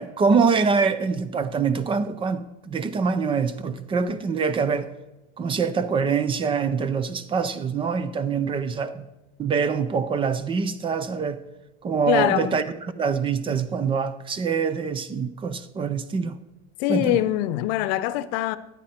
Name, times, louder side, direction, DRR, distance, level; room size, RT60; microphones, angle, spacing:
voice 1, 0.0-4.9 5.4-9.1 9.4-11.4 11.8-12.6 13.0-16.4 16.9-17.2, right 5 dB, 15° right, 0.4 m, -24 dB
voice 2, 12.1-12.6 16.8-18.6, left 14 dB, 65° left, 0.8 m, -23 dB
16.5 x 10.5 x 4.3 m
cardioid pair, 170°, 33 cm